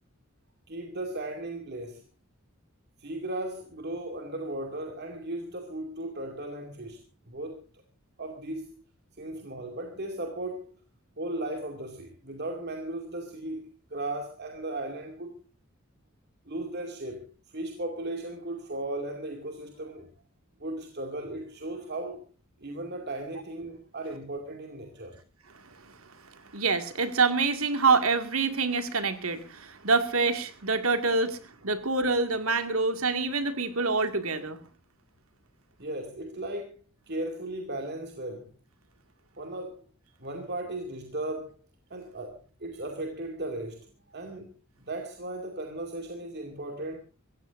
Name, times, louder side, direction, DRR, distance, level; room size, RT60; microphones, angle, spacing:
voice 1, 0.7-2.0 3.0-7.0 7.3-7.8 8.2-8.7 9.2-10.8 11.2-13.6 13.9-15.4 16.5-20.1 20.6-22.2 22.6-25.2 35.8-36.8 37.1-38.5 39.4-39.8 40.2-41.5 41.9-44.5 44.8-47.0, right 1 dB, 50° right, 2.5 m, -36 dB
voice 2, 26.5-31.4 31.6-34.6, right 4 dB, 80° right, 2.1 m, -26 dB
25.0 x 16.0 x 2.6 m
head